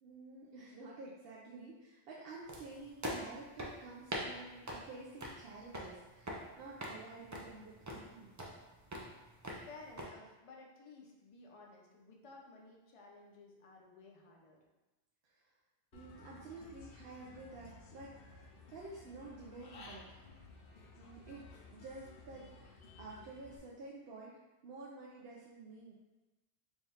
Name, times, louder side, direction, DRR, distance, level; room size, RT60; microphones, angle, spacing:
voice 1, 0.0-8.4 15.2-15.5 15.9-18.4 18.7-20.3 21.0-25.9, right 3 dB, 70° right, -5 dB, 0.7 m, -51 dB
sound 1, 2.5-10.1, equal, 30° right, 0.3 m, -45 dB
voice 2, 9.4-14.6, left 3 dB, 40° left, -1 dB, 0.5 m, -56 dB
Human voice / Bird, 15.9-23.6, left 3 dB, 65° left, 0.7 m, -56 dB
3.5 x 2.4 x 4.1 m, 1.1 s
omnidirectional pair, 1.1 m